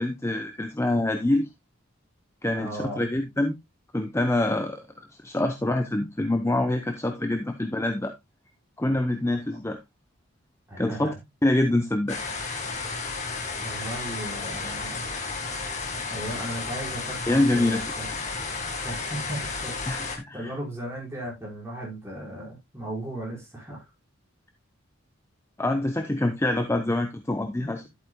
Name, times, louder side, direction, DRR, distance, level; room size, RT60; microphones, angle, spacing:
voice 1, 0.0-1.5 2.4-3.5 3.9-4.8 5.2-8.1 8.8-9.8 10.8-11.1 11.4-12.2 13.7-13.8 17.3-17.8 19.9-20.5 25.6-27.9, left 1 dB, 15° left, 0.7 m, -25 dB
voice 2, 2.5-3.1 10.7-11.1 13.6-15.1 16.1-18.1 18.7-23.9, right 1 dB, 15° right, 5.2 m, -36 dB
sound 1, 12.1-20.2, left 4 dB, 35° left, 1.8 m, -33 dB
11.0 x 8.3 x 2.2 m
head